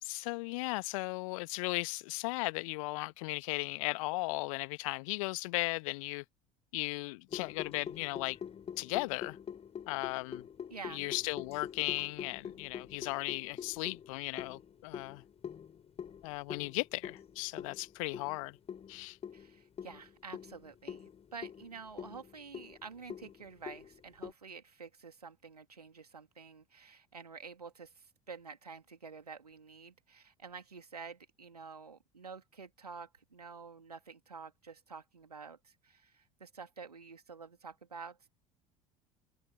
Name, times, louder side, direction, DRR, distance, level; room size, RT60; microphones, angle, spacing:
voice 1, 0.0-6.2 6.7-8.4 8.8-9.4 9.9-10.4 10.9-15.2 16.2-18.6 18.9-19.2, left 24 dB, 60° left, 1.1 m, -36 dB
sound 1, 7.3-24.3, left 8 dB, 30° left, 6.9 m, -45 dB
voice 2, 10.7-11.1 19.3-38.3, right 5 dB, 85° right, 2.6 m, -49 dB
figure-of-eight pair, 65°, 20 cm